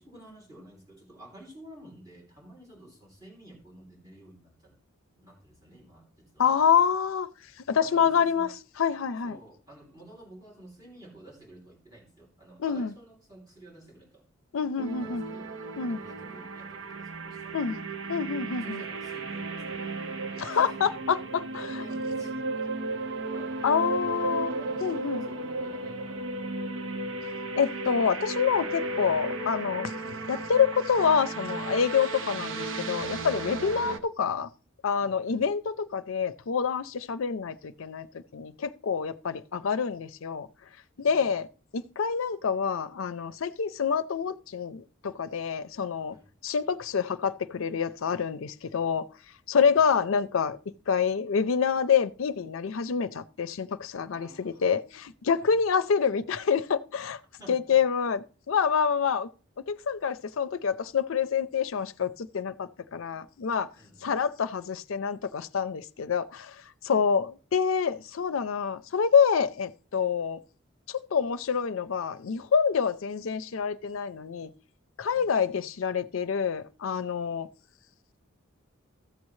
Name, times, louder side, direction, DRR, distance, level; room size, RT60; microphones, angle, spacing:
voice 1, 0.0-4.8 5.2-6.5 7.7-8.5 9.2-14.2 14.9-15.5 15.9-17.8 18.6-19.9 20.3-20.9 21.5-22.7 23.3-26.8 29.7-29.9 35.0-35.4 38.0-38.1 41.0-41.3 46.1-46.3 49.5-49.9 54.1-54.7 55.4-55.6 57.4-57.8 63.7-64.1 66.9-67.1 75.1-75.3, right 1 dB, 20° right, 3.1 m, -52 dB
voice 2, 6.4-7.3 7.7-8.5 8.8-9.4 12.6-12.9 14.5-15.2 15.8-16.0 17.5-17.8 18.1-18.8 20.4-21.6 23.6-24.5 24.8-25.3 27.6-29.9 30.3-34.5 34.8-40.5 41.0-41.5 41.7-46.2 46.4-49.0 49.5-50.6 50.9-57.2 57.5-59.3 59.7-63.7 64.0-66.6 66.8-70.4 70.9-74.5 75.0-77.5, left 6 dB, 70° left, 0.5 m, -27 dB
sound 1, 14.8-34.0, right 2 dB, 65° right, 0.8 m, -34 dB
14.0 x 7.4 x 3.1 m
head